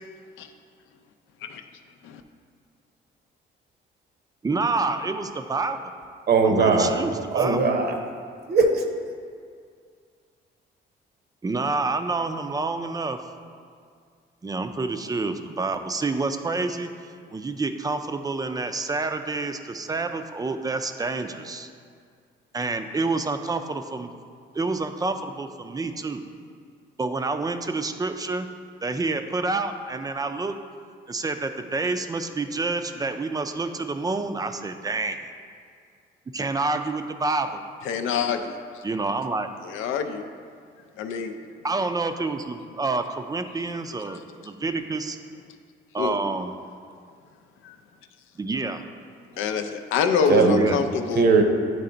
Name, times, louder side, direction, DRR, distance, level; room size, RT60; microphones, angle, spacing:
voice 1, 4.4-5.8 6.4-7.6 11.4-13.2 14.4-16.9 17.3-21.7 22.5-24.1 24.5-26.2 27.0-28.5 28.8-30.6 31.1-35.2 36.3-37.6 38.8-39.5 41.6-45.2 45.9-46.5 48.4-48.8 50.4-50.8, right 3 dB, 20° right, 8 dB, 0.4 m, -28 dB
voice 2, 6.3-7.0 7.3-7.9 8.5-8.8 50.3-50.7 51.1-51.4, right 4 dB, 55° right, 4 dB, 0.7 m, -19 dB
voice 3, 37.8-38.8 39.6-40.2 41.0-41.3 44.1-44.2 46.0-46.2 47.6-47.8 49.4-51.3, left 6 dB, 90° left, 7 dB, 0.5 m, -26 dB
9.1 x 3.3 x 3.8 m, 2.1 s
cardioid pair, 90°, 20 cm